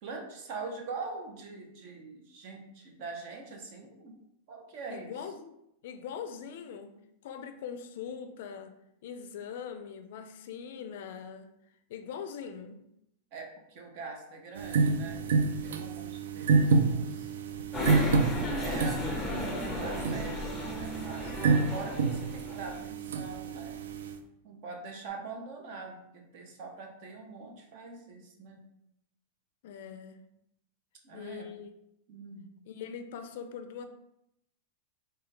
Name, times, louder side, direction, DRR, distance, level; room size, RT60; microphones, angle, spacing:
voice 1, 0.0-4.2 4.5-5.1 13.3-15.3 15.6-16.6 16.9-17.3 17.9-18.1 18.6-20.4 20.6-23.8 24.4-28.6 31.0-31.5 32.1-32.5, right 4 dB, 45° right, 2 dB, 0.7 m, -43 dB
voice 2, 4.9-5.5 5.8-6.9 7.2-8.7 9.0-11.5 11.9-12.8 29.6-30.2 31.1-31.7 32.7-33.8, left 7 dB, 65° left, 8 dB, 0.4 m, -41 dB
sound 1, 14.6-24.2, right 4 dB, 85° right, 0.3 m, -29 dB
sound 2, 17.7-22.8, left 1 dB, 5° left, 0.6 m, -35 dB
3.8 x 2.3 x 3.2 m, 0.80 s
supercardioid pair, 155°, 0 cm